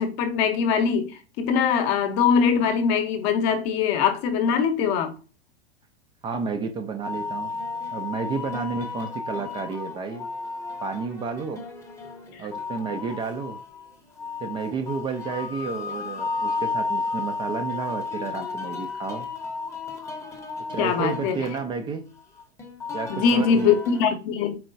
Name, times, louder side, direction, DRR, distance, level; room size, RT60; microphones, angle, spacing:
voice 1, 0.0-5.1 20.8-21.4 23.1-24.6, left 6 dB, 40° left, 0.8 m, -22 dB
voice 2, 6.2-7.5 7.9-10.3 10.8-11.7 12.4-13.6 14.4-19.3 20.7-22.1 22.9-23.7, right 5 dB, 15° right, 0.3 m, -31 dB
sound 1, 7.0-24.1, left 4 dB, 10° left, 0.8 m, -33 dB
4.4 x 3.6 x 2.6 m
figure-of-eight pair, 100°, 32 cm